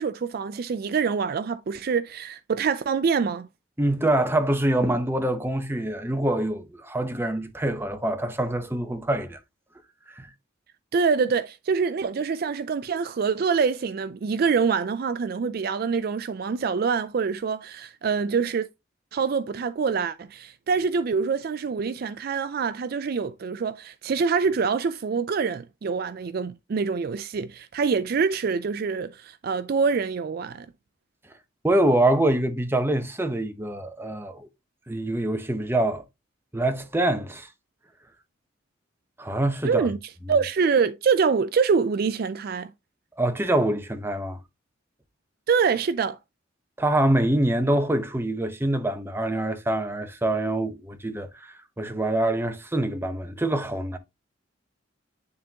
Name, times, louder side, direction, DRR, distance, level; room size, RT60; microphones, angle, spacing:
voice 1, 0.0-3.5 10.9-18.7 19.1-30.7 39.6-40.0 40.3-42.7 45.5-46.2, right 5 dB, 50° right, 0.4 m, -25 dB
voice 2, 3.8-9.4 10.1-10.3 31.6-34.5 34.9-36.0 36.5-37.5 39.2-39.9 43.2-44.4 46.8-54.0, right 1 dB, 10° right, 0.8 m, -25 dB
9.5 x 3.7 x 2.8 m
head